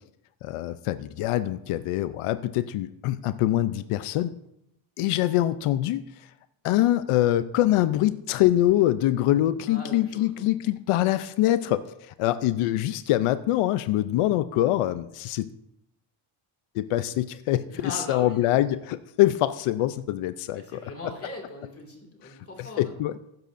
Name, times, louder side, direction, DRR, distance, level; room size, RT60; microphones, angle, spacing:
voice 1, 0.4-4.3 5.0-6.3 6.6-15.5 16.7-20.8 22.8-23.1, left 14 dB, 90° left, 12 dB, 0.6 m, -24 dB
voice 2, 9.6-10.3 17.7-18.5 20.5-23.0, left 2 dB, 25° left, 2 dB, 2.3 m, -39 dB
15.5 x 12.0 x 2.6 m, 0.83 s
cardioid pair, 165°, 50 cm